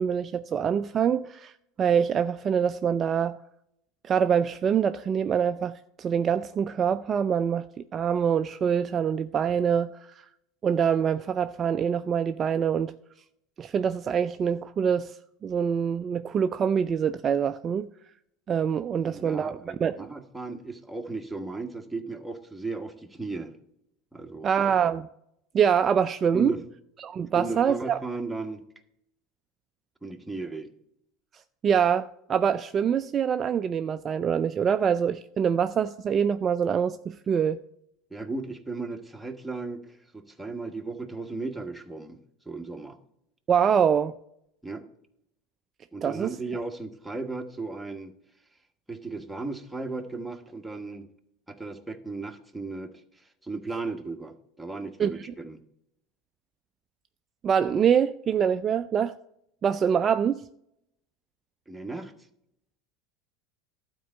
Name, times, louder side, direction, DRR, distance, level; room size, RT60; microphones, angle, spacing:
voice 1, 0.0-1.5 1.8-3.4 4.0-7.7 7.9-10.3 10.6-12.9 13.6-15.2 15.4-17.9 18.5-20.1 24.4-25.1 25.5-26.5 27.0-28.0 31.6-37.6 43.5-44.1 46.0-46.4 55.0-55.2 57.4-59.1 59.6-60.4, right 7 dB, 35° right, 0.4 m, -25 dB
voice 2, 18.9-23.5 24.1-24.5 26.3-26.6 27.3-28.6 30.0-30.7 38.1-42.2 42.4-43.0 44.6-44.8 45.9-48.1 48.9-51.1 51.5-55.6 61.7-62.1, right 3 dB, 5° right, 1.3 m, -36 dB
12.0 x 4.5 x 7.3 m
hypercardioid pair, 85°, 0 cm